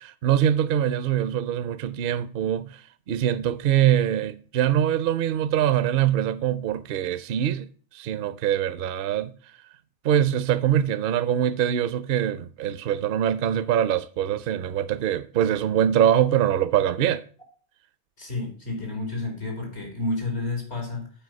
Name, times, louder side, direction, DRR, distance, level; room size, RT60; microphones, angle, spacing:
voice 1, 0.0-2.7 3.1-9.3 10.0-17.2, right 10 dB, 65° right, 0.7 m, -23 dB
voice 2, 18.2-21.1, left 2 dB, 90° left, 3.4 m, -30 dB
9.0 x 4.5 x 6.2 m
omnidirectional pair, 1.1 m